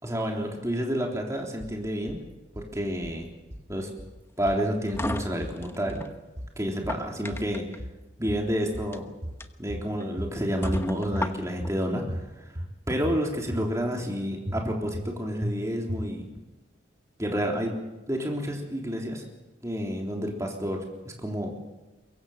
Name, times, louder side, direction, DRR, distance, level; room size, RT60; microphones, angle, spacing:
voice 1, 0.0-2.2 2.5-3.3 3.7-3.9 4.4-6.0 6.6-7.6 8.2-9.1 9.6-12.5 12.9-16.3 17.2-17.8 18.1-19.2 19.6-21.5, equal, 15° right, 0 dB, 3.6 m, -29 dB
sound 1, 1.6-2.2 2.5-3.2 3.5-4.2 4.5-5.1 5.4-6.1 6.4-7.1 7.3-8.0 8.3-9.0 9.2-9.9 10.2-10.8 11.1-11.8 12.1-12.7 13.0-13.7 14.0-14.1 14.5-15.1 15.4-15.5 15.9-16.4, equal, 40° right, 2.6 m, -36 dB
sound 2, 4.5-6.1 6.7-7.8 8.8-9.0 9.4-9.5 10.0-10.1 10.6-11.7, left 1 dB, 15° left, 1.0 m, -34 dB
23.0 x 23.0 x 7.3 m, 1.1 s
head